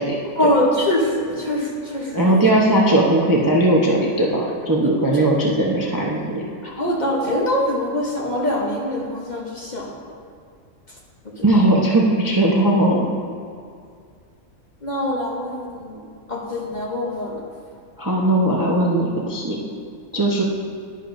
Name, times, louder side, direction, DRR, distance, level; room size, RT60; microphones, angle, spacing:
voice 1, 0.4-2.5 4.8-4.9 6.6-9.9 11.4-11.5 14.8-16.0 16.3-17.4, left 1 dB, 35° left, -2 dB, 0.9 m, -23 dB
voice 2, 2.1-6.5 11.4-13.1 18.0-19.6 20.1-20.4, right 1 dB, 20° right, -3 dB, 0.6 m, -18 dB
10.5 x 10.5 x 2.6 m, 2.2 s
omnidirectional pair, 1.5 m